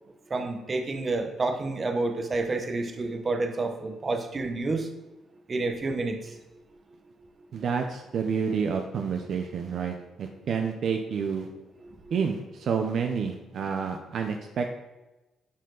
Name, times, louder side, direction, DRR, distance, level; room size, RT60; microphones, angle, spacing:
voice 1, 0.3-4.9 5.5-6.4 11.8-12.1, right 3 dB, 35° right, 6 dB, 1.1 m, -29 dB
voice 2, 7.5-11.5 12.1-14.7, right 6 dB, 65° right, 4 dB, 0.8 m, -29 dB
11.5 x 4.5 x 3.9 m, 1.0 s
cardioid pair, 90°, 0 cm